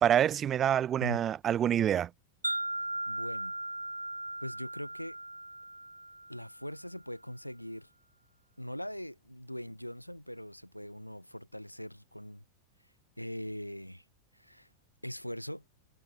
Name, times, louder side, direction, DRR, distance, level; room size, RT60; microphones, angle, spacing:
voice 1, 0.0-2.1, right 10 dB, 25° right, 0.7 m, -26 dB
Wind chime, 2.4-6.7, right 1 dB, 85° right, 2.3 m, -38 dB
voice 2, 2.8-3.5 4.4-5.2 6.3-7.9 8.6-12.4 13.2-14.0 14.3-14.7 15.0-15.6, equal, 90° left, 3.6 m, -41 dB
figure-of-eight pair, 90°, 0 cm